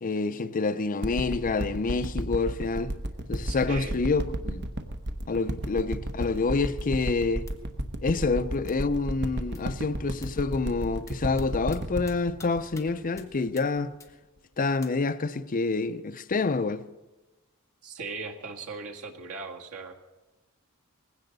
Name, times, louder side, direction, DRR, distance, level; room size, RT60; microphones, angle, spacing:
voice 1, 0.0-2.9 3.3-4.7 5.3-7.5 8.0-13.9 14.6-16.8, left 3 dB, 40° left, 0.5 m, -27 dB
sound 1, 1.0-13.8 14.4-14.5, right 1 dB, 50° right, 1.0 m, -32 dB
voice 2, 3.4-3.9 17.8-19.9, right 4 dB, 80° right, 1.8 m, -38 dB
sound 2, 7.5-7.6 8.7-8.8 9.5-9.6 10.2-10.3 11.1-11.4 11.7-11.8 12.1-12.5 12.7-12.9 13.2-13.3 13.6-13.7 14.0-14.1 14.8-14.9, left 4 dB, 15° left, 1.5 m, -48 dB
19.5 x 16.0 x 4.0 m
head